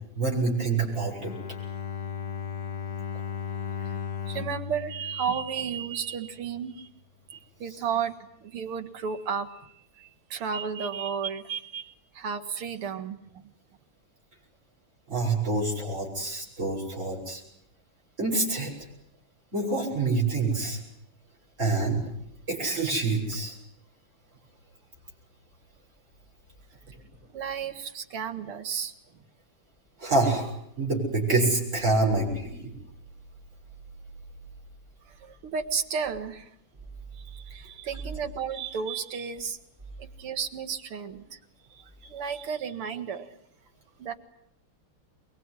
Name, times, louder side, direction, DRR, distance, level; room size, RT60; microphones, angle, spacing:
voice 1, 0.2-1.3 15.1-17.4 18.2-18.7 19.5-20.8 21.6-22.0 22.5-23.5 30.0-30.5 30.8-32.7, right 3 dB, 30° right, -2 dB, 7.5 m, -26 dB
Bowed string instrument, 1.2-6.2, left 7 dB, 50° left, 1.7 m, -36 dB
voice 2, 4.3-6.9 7.3-8.1 8.4-11.9 12.1-13.2 27.3-28.9 35.2-36.5 37.1-39.6 40.0-41.4 41.7-43.3 44.0-44.1, right 6 dB, 80° right, 8 dB, 2.5 m, -33 dB
23.5 x 23.0 x 9.8 m, 0.75 s
omnidirectional pair, 2.4 m